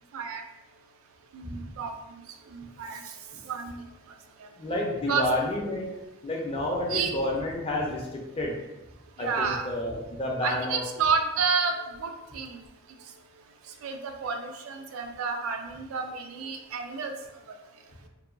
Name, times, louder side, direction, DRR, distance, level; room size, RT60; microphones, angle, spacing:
voice 1, 1.3-1.9 2.5-3.0 3.5-3.9 5.1-5.2 6.9-7.1 9.2-9.7 10.4-12.6 13.8-17.1, right 5 dB, 85° right, 5 dB, 0.4 m, -30 dB
voice 2, 4.6-5.9 6.2-8.6 9.2-10.8, left 1 dB, 25° left, -1 dB, 0.4 m, -30 dB
2.7 x 2.2 x 2.5 m, 0.97 s
head